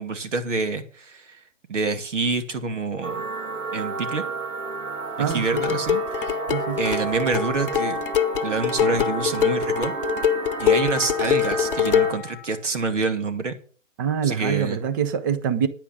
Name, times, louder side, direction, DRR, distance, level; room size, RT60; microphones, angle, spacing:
voice 1, 0.0-1.4 1.7-3.3 3.7-4.2 5.2-6.4 6.8-8.0 8.4-9.9 10.6-13.6 14.2-14.8, right 4 dB, 65° right, 2.5 m, -27 dB
sound 1, 3.0-12.1, right 4 dB, 85° right, 1.9 m, -31 dB
voice 2, 5.2-5.8 6.5-6.8 14.0-15.7, right 8 dB, 15° right, 0.6 m, -25 dB
sound 2, 5.3-12.3, left 9 dB, 45° left, 0.8 m, -24 dB
10.0 x 9.2 x 6.2 m
figure-of-eight pair, 145°, 39 cm